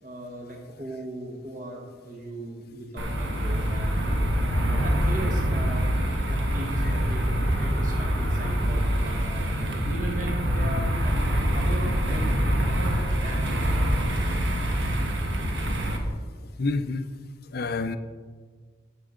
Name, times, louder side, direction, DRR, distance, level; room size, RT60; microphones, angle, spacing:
voice 1, 0.0-5.8 6.3-11.1 11.5-13.8 15.3-15.5, right 1 dB, 45° right, 0 dB, 1.3 m, -38 dB
sound 1, 3.0-16.0, equal, 65° right, 1.3 m, -25 dB
voice 2, 16.6-17.1 17.5-18.0, left 3 dB, 50° left, 10 dB, 0.5 m, -28 dB
14.0 x 6.8 x 3.8 m, 1.5 s
head